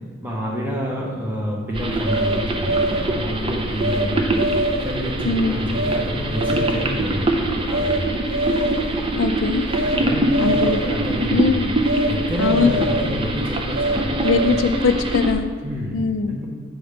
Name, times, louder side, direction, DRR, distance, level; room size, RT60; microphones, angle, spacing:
voice 1, 0.2-4.4 4.8-8.0 9.8-11.6 12.0-14.6 15.6-16.0 16.3-16.5, equal, 10° right, -5 dB, 1.0 m, -28 dB
sound 1, 1.7-15.3, right 1 dB, 25° right, 0.5 m, -24 dB
sound 2, 2.0-3.1 3.8-4.1 4.4-5.0 5.7-6.0 6.3-6.9 7.7-8.0 8.3-8.9 9.7-10.0 10.3-10.9 11.9-12.1 12.4-13.2 13.7-14.8, right 1 dB, 80° right, 1.0 m, -24 dB
voice 2, 5.2-5.7 9.1-9.7 10.4-10.8 11.3-11.7 12.4-12.9 14.2-15.5 15.9-16.4, left 5 dB, 70° left, 8 dB, 0.3 m, -21 dB
7.8 x 4.0 x 5.0 m, 1.5 s
head